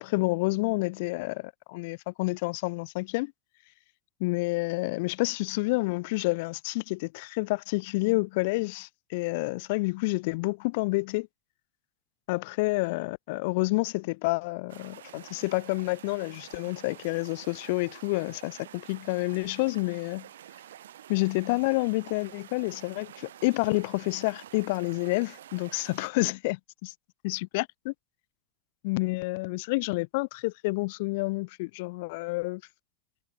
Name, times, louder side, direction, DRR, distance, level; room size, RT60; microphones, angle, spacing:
voice 1, 0.0-3.3 4.2-11.3 12.3-20.3 21.1-26.9 27.2-27.9 28.8-32.6, left 25 dB, 65° left, 1.1 m, -29 dB
sound 1, 14.7-26.1, right 11 dB, 90° right, 4.7 m, -49 dB
supercardioid pair, 120°, 0 cm